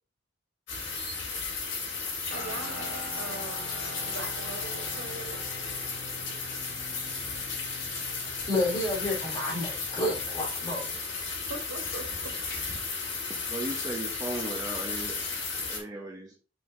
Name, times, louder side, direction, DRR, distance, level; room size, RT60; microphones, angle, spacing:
sound 1, 0.7-15.8, left 4 dB, 85° left, 3.3 m, -34 dB
Guitar, 2.3-10.5, equal, 45° left, 1.7 m, -44 dB
voice 1, 2.3-3.7 4.1-5.4 11.5-12.3, right 2 dB, 85° right, 3 dB, 1.8 m, -41 dB
voice 2, 8.5-11.0, left 1 dB, 20° left, -3 dB, 2.6 m, -30 dB
voice 3, 13.5-15.1 15.7-16.3, right 1 dB, 20° right, -1 dB, 1.0 m, -36 dB
5.9 x 5.0 x 3.7 m, 0.35 s
head